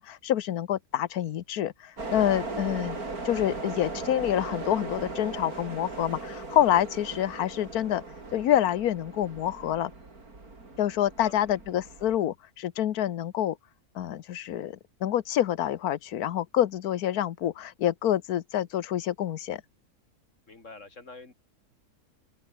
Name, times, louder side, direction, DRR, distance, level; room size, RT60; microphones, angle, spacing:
voice 1, 0.0-3.0 3.2-8.0 8.3-9.9 10.8-13.6 13.9-19.6, left 11 dB, 80° left, 1.4 m, -27 dB
sound 1, 2.0-12.2, right 3 dB, 75° right, 4.8 m, -38 dB
voice 2, 20.5-21.3, left 3 dB, 55° left, 3.5 m, -46 dB
open air
omnidirectional pair, 1.6 m